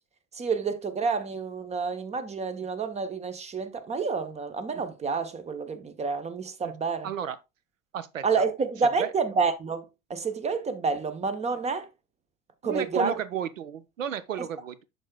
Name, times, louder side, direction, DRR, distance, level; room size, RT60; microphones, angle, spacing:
voice 1, 0.3-7.1 8.2-11.9 12.6-13.1, right 5 dB, 15° right, 0.9 m, -29 dB
voice 2, 7.0-7.4 7.9-8.4 9.0-9.1 12.6-14.8, right 8 dB, 75° right, 0.8 m, -33 dB
12.0 x 3.9 x 2.3 m
figure-of-eight pair, 75°, 39 cm